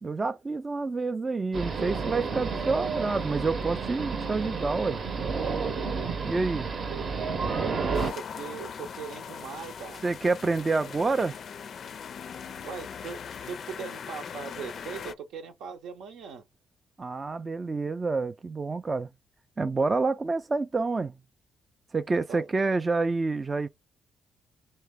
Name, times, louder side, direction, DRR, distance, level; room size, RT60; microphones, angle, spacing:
voice 1, 0.0-5.0 6.2-6.7 10.0-11.4 17.0-19.1 19.6-21.1 21.9-23.7, right 3 dB, 30° right, 0.3 m, -28 dB
sound 1, 1.5-8.1, right 5 dB, 50° right, 0.8 m, -31 dB
voice 2, 6.9-7.3 7.6-10.0 12.6-13.2 13.5-16.4 22.3-22.5, right 7 dB, 80° right, 0.8 m, -39 dB
sound 2, 7.9-15.1, left 7 dB, 55° left, 0.4 m, -40 dB
3.3 x 2.9 x 3.6 m
cardioid pair, 90°, 0 cm